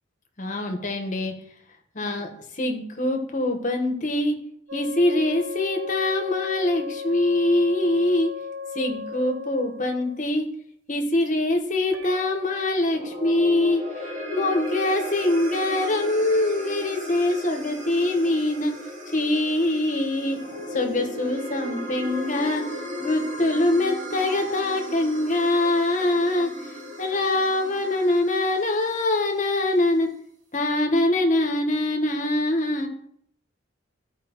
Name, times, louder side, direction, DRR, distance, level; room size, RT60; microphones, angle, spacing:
voice 1, 0.4-1.3 1.9-2.3 2.6-4.4 4.7-8.3 8.7-10.5 10.9-13.8 14.3-18.7 19.1-20.4 20.7-22.6 23.0-26.5 27.0-30.1 30.5-32.9, left 2 dB, 40° left, 4 dB, 1.2 m, -23 dB
sound 1, 4.7-10.2 11.9-12.7, left 5 dB, 80° right, 0.8 m, -36 dB
sound 2, 12.8-29.3, equal, 40° right, 1.6 m, -36 dB
13.5 x 4.9 x 3.0 m, 0.68 s
head